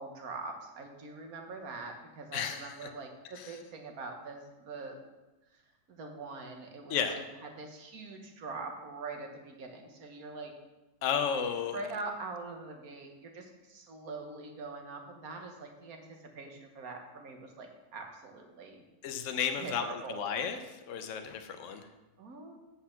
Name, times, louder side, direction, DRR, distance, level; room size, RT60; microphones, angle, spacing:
voice 1, 0.0-5.0 5.5-5.6 5.9-10.5 11.7-18.8 19.6-20.3 22.2-22.6, right 3 dB, 75° right, 3 dB, 1.7 m, -43 dB
voice 2, 2.3-2.9 3.4-3.5 6.9-7.1 11.0-11.8 19.0-20.6 20.9-21.9, left 7 dB, 60° left, 6 dB, 1.1 m, -33 dB
8.2 x 5.6 x 5.8 m, 1.1 s
omnidirectional pair, 1.5 m